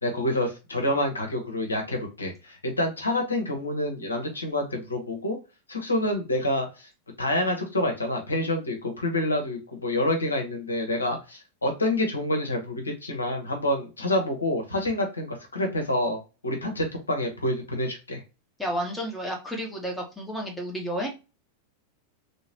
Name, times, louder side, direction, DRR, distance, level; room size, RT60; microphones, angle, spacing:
voice 1, 0.0-5.4 5.7-6.9 7.2-18.2, left 1 dB, 75° left, 3 dB, 1.0 m, -27 dB
voice 2, 18.6-21.1, equal, 5° left, 0 dB, 1.1 m, -31 dB
3.2 x 2.9 x 2.9 m, 0.29 s
figure-of-eight pair, 90°, 0 cm